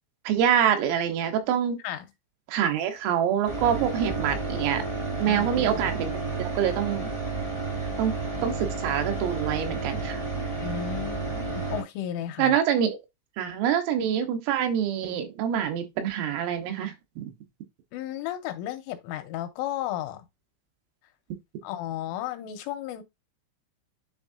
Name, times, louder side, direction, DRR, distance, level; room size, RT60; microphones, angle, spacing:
voice 1, 0.3-1.8 2.5-4.8 5.2-6.1 6.4-7.1 8.0-8.2 8.4-10.3 12.4-13.0 13.4-17.3, right 9 dB, 85° right, 3.8 m, -26 dB
sound 1, 3.4-11.8, right 3 dB, 10° right, 2.3 m, -31 dB
voice 2, 5.3-5.8 10.6-12.6 17.9-20.3 21.6-23.0, left 11 dB, 85° left, 3.2 m, -34 dB
10.5 x 3.7 x 2.6 m
omnidirectional pair, 5.8 m